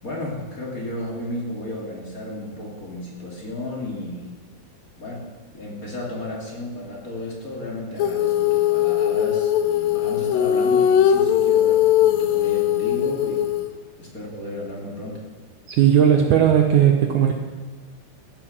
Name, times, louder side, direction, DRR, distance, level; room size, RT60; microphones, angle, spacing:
voice 1, 0.0-4.3 5.0-5.3 5.5-13.5 14.0-15.2, left 1 dB, 25° left, -3 dB, 2.7 m, -33 dB
Female singing, 8.0-13.7, left 10 dB, 75° left, 2.3 m, -20 dB
voice 2, 15.7-17.3, right 9 dB, 70° right, 3 dB, 2.0 m, -16 dB
15.5 x 8.9 x 7.5 m, 1.3 s
omnidirectional pair, 4.4 m